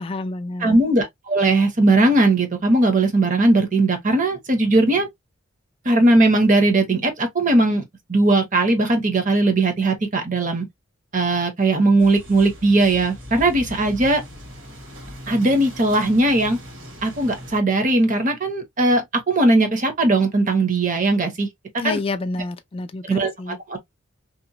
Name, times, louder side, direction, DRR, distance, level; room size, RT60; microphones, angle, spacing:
voice 1, 0.0-0.8 21.8-23.6, left 3 dB, 30° left, 0.3 m, -29 dB
voice 2, 0.6-5.1 5.8-10.7 11.1-14.2 15.3-16.6 17.0-21.5 21.8-22.0 23.1-23.8, right 2 dB, 40° right, 0.8 m, -19 dB
sound 1, 12.0-17.6, equal, 65° right, 1.5 m, -39 dB
2.9 x 2.1 x 2.6 m
head